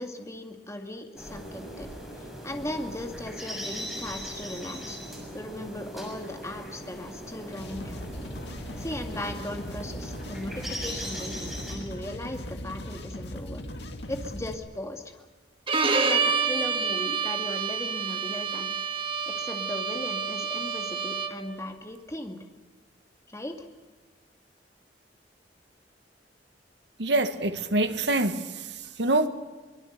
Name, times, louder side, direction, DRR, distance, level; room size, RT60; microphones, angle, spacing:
voice 1, 0.0-1.9 2.2-5.0 5.3-8.0 8.8-13.6 14.1-15.3 15.8-18.7 19.3-22.4 23.3-23.7, left 1 dB, 15° left, 2.2 m, -37 dB
sound 1, 1.2-11.8, equal, ahead, 6.7 m, -39 dB
sound 2, 7.5-14.5, equal, 70° left, 2.3 m, -39 dB
Bowed string instrument, 15.7-21.5, right 5 dB, 30° right, 1.8 m, -28 dB
voice 2, 27.0-28.7 29.0-29.3, right 2 dB, 80° right, 1.7 m, -25 dB
24.5 x 22.0 x 6.7 m
head